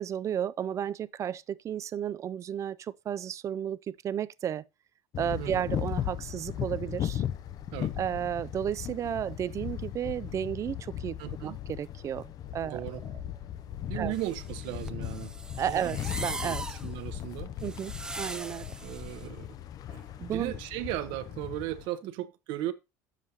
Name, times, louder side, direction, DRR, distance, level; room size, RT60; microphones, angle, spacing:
voice 1, 0.0-4.6 5.2-7.2 8.0-12.8 13.9-14.1 15.6-16.6 17.6-18.7 20.2-20.6, right 9 dB, 40° right, 0.4 m, -33 dB
sound 1, 5.1-21.9, left 11 dB, 50° left, 0.6 m, -37 dB
voice 2, 5.4-5.7 7.7-8.0 11.2-11.6 12.7-13.0 13.9-15.4 15.7-15.9 16.4-16.6 16.8-17.5 18.2-18.3 18.8-19.5 19.9-22.7, right 14 dB, 70° right, 0.9 m, -36 dB
sound 2, 14.1-19.3, right 2 dB, 10° right, 0.8 m, -40 dB
9.4 x 7.4 x 2.8 m
supercardioid pair, 100°, 8 cm